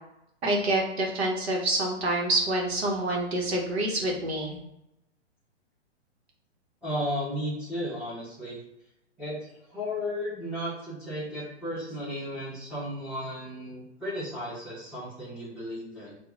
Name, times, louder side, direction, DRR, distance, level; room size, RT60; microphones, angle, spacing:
voice 1, 0.4-4.6, right 1 dB, 60° right, 0 dB, 1.0 m, -27 dB
voice 2, 6.8-8.6 9.2-16.2, equal, ahead, -13 dB, 1.0 m, -34 dB
4.5 x 2.3 x 2.4 m, 0.84 s
hypercardioid pair, 130°, 36 cm